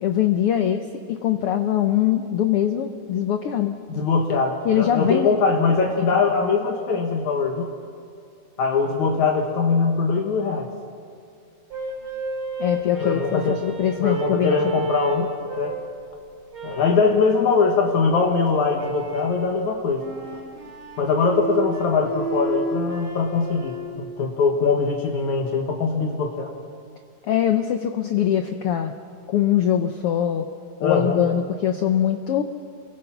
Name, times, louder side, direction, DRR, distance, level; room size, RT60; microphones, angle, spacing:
voice 1, 0.0-3.8 4.6-5.4 6.0-6.3 12.6-14.6 27.2-28.9 29.3-30.4 30.8-32.4, left 10 dB, 90° left, 7 dB, 1.2 m, -22 dB
voice 2, 3.9-7.7 8.6-10.7 13.0-13.6 14.0-15.8 16.6-20.0 21.0-26.5 30.8-31.2, left 4 dB, 65° left, 2 dB, 2.8 m, -22 dB
sound 1, 11.7-15.9 16.5-17.1 18.7-19.4 20.0-23.9, right 2 dB, 40° right, 3.7 m, -31 dB
29.0 x 22.5 x 5.9 m, 2.3 s
omnidirectional pair, 3.8 m